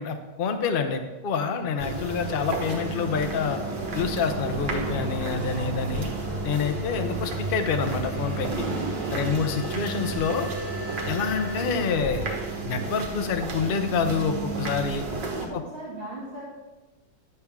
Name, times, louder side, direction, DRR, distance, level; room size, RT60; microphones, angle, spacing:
voice 1, 0.0-3.6 3.9-6.1 6.4-8.5 9.1-10.5 11.1-12.4 12.6-15.0, left 5 dB, 65° left, 6 dB, 0.5 m, -27 dB
sound 1, 1.6-12.0, equal, 20° left, 1.5 m, -41 dB
sound 2, 1.8-15.5, right 3 dB, 70° right, 1.9 m, -32 dB
voice 2, 5.5-6.3 9.1-10.1 15.4-16.5, right 1 dB, 30° right, -9 dB, 2.2 m, -40 dB
11.0 x 7.1 x 3.6 m, 1.1 s
omnidirectional pair, 2.0 m